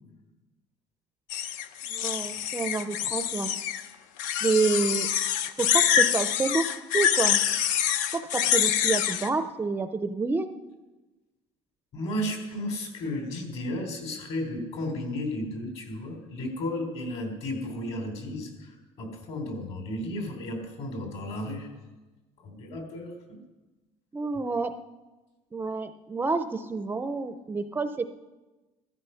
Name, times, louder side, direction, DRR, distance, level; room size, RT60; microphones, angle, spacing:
sound 1, 1.3-3.8 4.2-9.3, left 9 dB, 80° left, 0.8 m, -26 dB
voice 1, 1.9-3.5 4.4-5.1 5.6-6.7 6.9-7.4 8.1-10.5 24.1-24.7 25.5-28.1, right 4 dB, 15° right, 9 dB, 0.5 m, -28 dB
voice 2, 11.9-21.7 22.4-23.4, left 1 dB, 50° left, 4 dB, 3.7 m, -34 dB
16.5 x 13.0 x 5.7 m, 1.2 s
cardioid pair, 160°, 13 cm